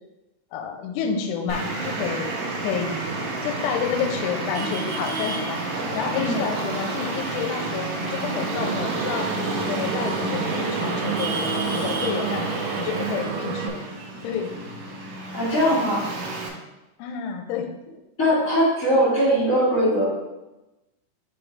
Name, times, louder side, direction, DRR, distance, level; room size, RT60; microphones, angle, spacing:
voice 1, 0.5-3.0 3.4-13.8 14.2-14.5 17.0-17.7, left 7 dB, 80° left, 4 dB, 2.6 m, -30 dB
Traffic noise roadway noise, 1.5-16.5, right 2 dB, 70° right, 2.3 m, -30 dB
sound 1, 8.3-13.7, right 8 dB, 85° right, 2.2 m, -31 dB
voice 2, 15.3-16.0 18.2-20.0, equal, 45° left, -10 dB, 1.1 m, -20 dB
5.9 x 5.0 x 3.2 m, 0.98 s
omnidirectional pair, 5.0 m